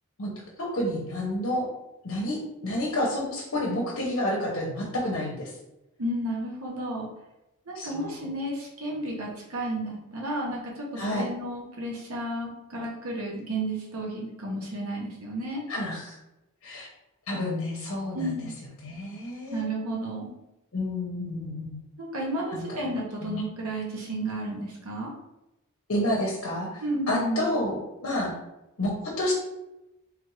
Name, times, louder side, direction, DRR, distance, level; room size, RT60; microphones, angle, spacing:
voice 1, 0.6-1.7 2.0-5.5 7.7-8.3 11.0-11.3 15.7-16.2 16.6-16.9 17.3-18.5 18.8-19.7 20.7-21.8 22.5-22.9 23.2-23.4 25.9-28.4 28.8-29.3, left 1 dB, 60° left, -2 dB, 0.7 m, -30 dB
voice 2, 6.0-7.1 7.7-15.6 18.1-18.6 19.5-20.4 22.0-25.1 26.8-27.5, right 1 dB, 80° right, -2 dB, 0.8 m, -32 dB
3.5 x 2.4 x 3.0 m, 0.91 s
head